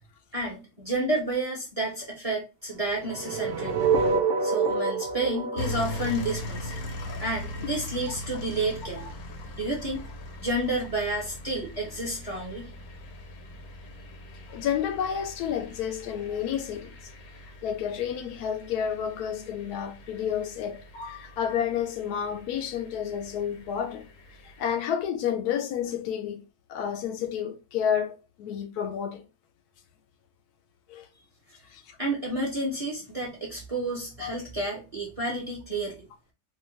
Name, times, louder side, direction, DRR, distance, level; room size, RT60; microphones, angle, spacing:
voice 1, 0.3-3.9 4.4-6.7 7.2-9.0 9.6-10.1 10.4-12.7 32.0-36.0, right 1 dB, 30° right, 0.7 m, -30 dB
sound 1, 2.9-7.0, right 4 dB, 65° right, 0.7 m, -27 dB
sound 2, 5.6-24.7, left 1 dB, 70° left, 1.1 m, -41 dB
voice 2, 14.5-17.0 17.6-24.0 24.6-26.4 26.7-29.2 30.9-31.1 31.7-31.8 34.2-34.3, left 8 dB, 90° left, 1.1 m, -30 dB
2.7 x 2.3 x 3.1 m
omnidirectional pair, 1.6 m